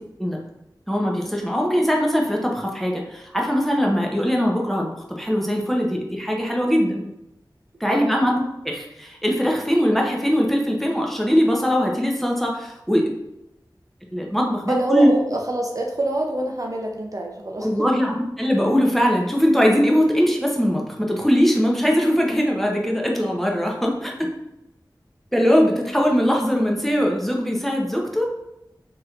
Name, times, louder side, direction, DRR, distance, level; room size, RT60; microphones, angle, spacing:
voice 1, 0.9-7.0 7.8-13.1 14.1-15.1 17.6-24.3 25.3-28.2, equal, 5° left, -1 dB, 0.6 m, -21 dB
voice 2, 14.7-17.9, right 1 dB, 45° right, 1 dB, 0.4 m, -25 dB
3.1 x 2.8 x 2.4 m, 0.89 s
wide cardioid pair, 50°, 8 cm